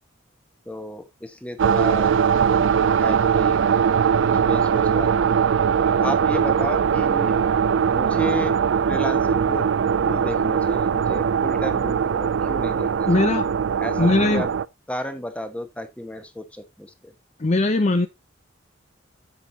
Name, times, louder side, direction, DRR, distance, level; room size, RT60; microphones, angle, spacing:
voice 1, 0.7-2.1 3.0-3.7 4.3-5.3 5.9-7.4 7.9-8.6 8.9-9.7 10.0-13.3 13.8-14.5 14.9-17.1, left 1 dB, 5° left, 1.2 m, -33 dB
sound 1, 1.6-14.7, right 7 dB, 70° right, 0.4 m, -21 dB
voice 2, 13.1-13.5 14.0-14.4 17.4-18.1, left 2 dB, 35° left, 0.5 m, -19 dB
9.4 x 7.4 x 2.8 m
head